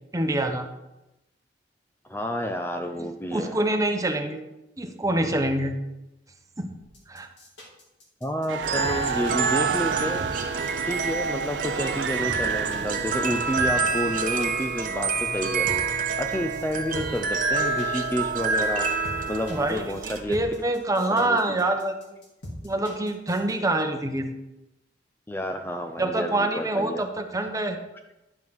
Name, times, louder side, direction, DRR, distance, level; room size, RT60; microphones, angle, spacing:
voice 1, 0.1-0.7 3.0-4.4 4.8-5.8 6.6-6.8 7.1-7.3 19.5-22.0 22.6-24.3 26.0-27.8, right 1 dB, 20° right, 5 dB, 0.9 m, -26 dB
voice 2, 2.1-3.6 8.2-10.3 10.8-18.9 19.3-20.4 21.1-21.8 25.3-27.0, equal, 10° left, 5 dB, 0.5 m, -30 dB
sound 1, 6.9-23.5, left 1 dB, 80° left, 2.7 m, -41 dB
sound 2, 8.5-15.8, right 6 dB, 80° right, 0.5 m, -33 dB
sound 3, 8.6-20.2, right 4 dB, 50° right, 0.9 m, -27 dB
11.0 x 5.4 x 6.2 m, 0.95 s
head